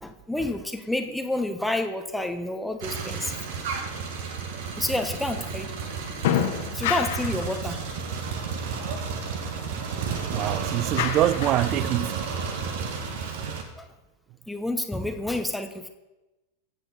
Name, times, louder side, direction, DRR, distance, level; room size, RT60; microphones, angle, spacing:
voice 1, 0.0-3.3 4.8-5.9 6.7-8.1 13.8-13.9 14.5-15.9, left 1 dB, 5° left, 1.2 m, -29 dB
sound 1, 2.8-13.6, right 6 dB, 50° right, 1.8 m, -32 dB
sound 2, 4.9-13.2, left 9 dB, 55° left, 1.6 m, -33 dB
voice 2, 10.2-12.3, right 14 dB, 35° right, 0.5 m, -25 dB
24.0 x 8.1 x 4.3 m
figure-of-eight pair, 90°, 0 cm